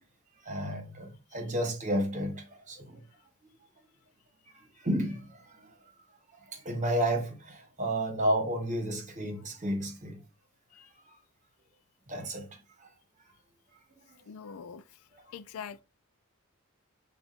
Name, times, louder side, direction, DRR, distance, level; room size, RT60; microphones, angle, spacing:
voice 1, 0.4-3.0 4.8-5.7 6.5-10.2 12.1-12.5 12.8-12.9, right 1 dB, 35° right, 1.2 m, -32 dB
voice 2, 14.3-14.8 15.3-15.8, left 7 dB, 85° left, 0.4 m, -43 dB
7.0 x 2.5 x 2.5 m
head